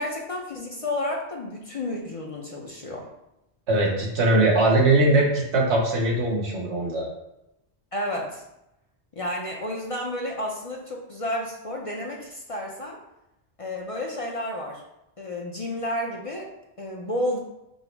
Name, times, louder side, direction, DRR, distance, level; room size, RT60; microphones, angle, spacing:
voice 1, 0.0-3.1 7.9-8.4 9.2-13.0 13.6-14.8 15.2-16.5 16.8-17.4, left 1 dB, 40° left, -1 dB, 0.6 m, -31 dB
voice 2, 3.7-7.1, right 2 dB, 90° right, -1 dB, 1.3 m, -21 dB
5.4 x 2.0 x 4.4 m, 0.87 s
omnidirectional pair, 1.1 m